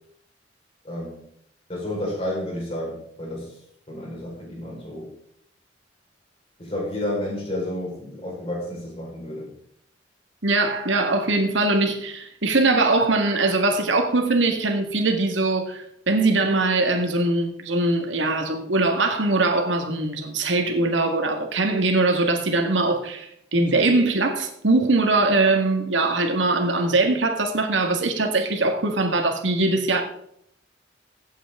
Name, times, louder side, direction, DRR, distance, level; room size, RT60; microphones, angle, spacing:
voice 1, 0.8-1.2 1.7-3.5 3.9-5.1 6.6-9.5, left 1 dB, 30° left, -2 dB, 4.7 m, -31 dB
voice 2, 10.4-30.0, right 2 dB, 85° right, 4 dB, 1.8 m, -22 dB
16.0 x 8.3 x 3.7 m, 0.71 s
head